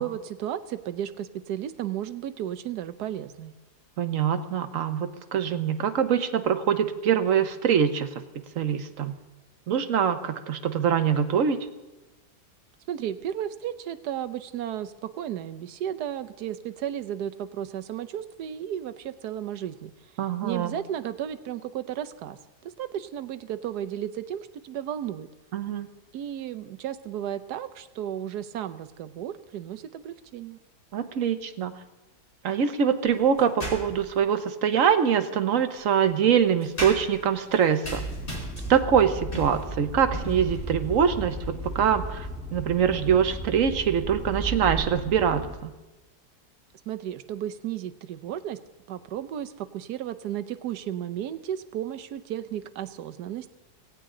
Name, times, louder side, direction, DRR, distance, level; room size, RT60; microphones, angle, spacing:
voice 1, 0.0-3.5 12.9-19.9 20.4-25.3 26.1-30.6 46.9-48.6 48.9-53.5, right 10 dB, 75° right, 11 dB, 1.3 m, -34 dB
voice 2, 4.0-8.1 8.6-9.1 9.7-11.6 20.2-20.7 25.5-25.9 30.9-31.7 32.4-38.1 38.7-45.7, right 8 dB, 55° right, 9 dB, 1.2 m, -24 dB
sound 1, 33.0-34.2 35.3-44.0, equal, 30° left, 4.6 m, -41 dB
sound 2, 37.8-45.6, right 1 dB, 5° right, 1.7 m, -35 dB
17.0 x 17.0 x 3.8 m, 1.1 s
omnidirectional pair, 1.8 m